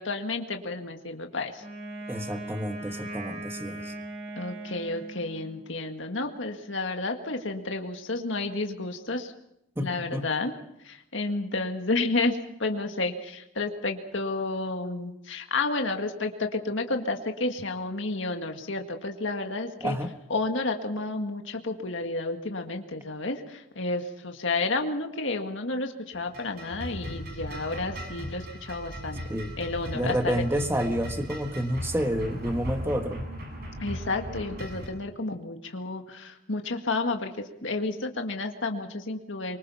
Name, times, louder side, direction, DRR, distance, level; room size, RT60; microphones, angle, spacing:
voice 1, 0.0-1.6 4.4-9.3 9.8-10.5 10.8-20.0 20.3-29.2 29.6-30.4 33.8-39.6, left 3 dB, 70° left, 4 dB, 1.9 m, -31 dB
Wind instrument woodwind instrument, 1.6-5.8, right 1 dB, 30° right, 7.3 m, -39 dB
voice 2, 2.1-3.9 9.8-10.3 19.8-20.1 29.3-29.6 29.9-33.2, equal, 10° right, 6 dB, 1.5 m, -29 dB
sound 1, 26.1-34.9, equal, 50° right, 7.9 m, -37 dB
24.5 x 24.0 x 5.7 m, 0.81 s
head